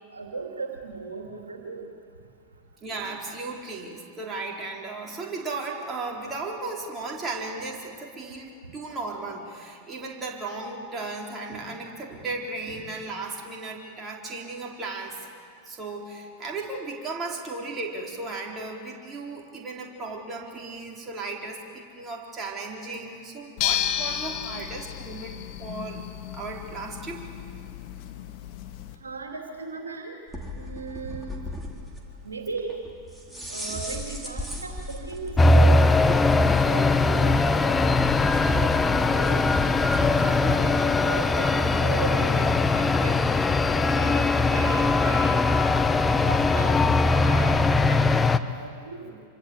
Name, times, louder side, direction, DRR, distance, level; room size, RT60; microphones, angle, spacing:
voice 1, 0.1-1.9 29.0-30.2 30.5-31.5 32.2-32.8 33.5-36.1 36.4-38.2 38.5-39.5 40.1-42.5 42.8-43.4 43.7-45.4 46.1-46.8 47.1-49.1, right 4 dB, 75° right, 2 dB, 2.8 m, -37 dB
voice 2, 2.8-15.2 15.6-26.1 26.3-27.3 39.7-39.8 44.5-44.8 47.4-48.4, right 3 dB, 20° right, -1 dB, 4.4 m, -36 dB
sound 1, 23.6-29.0, left 11 dB, 45° left, 1.9 m, -32 dB
sound 2, 30.3-40.7, left 1 dB, 5° right, 4.0 m, -36 dB
sound 3, 35.4-48.4, left 3 dB, 15° left, 1.0 m, -21 dB
26.0 x 25.0 x 8.1 m, 2.3 s
figure-of-eight pair, 90°, 0 cm